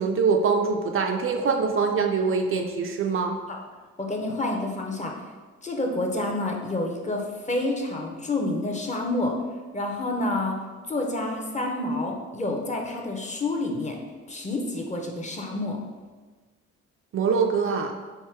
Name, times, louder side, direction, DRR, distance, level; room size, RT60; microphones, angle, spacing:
voice 1, 0.0-3.4 17.1-17.9, right 5 dB, 45° right, 3 dB, 0.4 m, -24 dB
voice 2, 4.0-5.1 5.6-9.4 9.7-10.6 10.9-14.0 14.3-15.8, left 2 dB, 25° left, 1 dB, 0.7 m, -28 dB
3.6 x 2.6 x 4.4 m, 1.4 s
cardioid pair, 90°, 30 cm